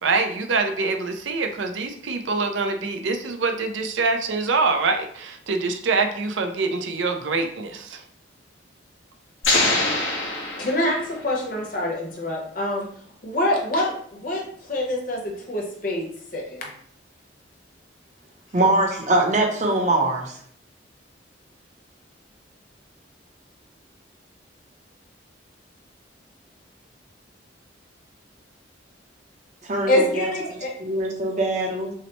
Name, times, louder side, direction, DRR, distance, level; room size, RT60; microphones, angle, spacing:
voice 1, 0.0-8.0, right 4 dB, 80° right, 6 dB, 0.5 m, -25 dB
sound 1, 9.4-11.3, left 2 dB, 90° left, 1.3 m, -24 dB
voice 2, 10.6-12.9 13.2-16.1 16.3-16.7 29.9-30.7, left 1 dB, 45° left, -1 dB, 0.9 m, -25 dB
voice 3, 18.5-20.4 29.6-30.3 30.8-31.9, right 2 dB, 40° right, 1 dB, 0.7 m, -22 dB
5.6 x 2.1 x 3.0 m, 0.62 s
head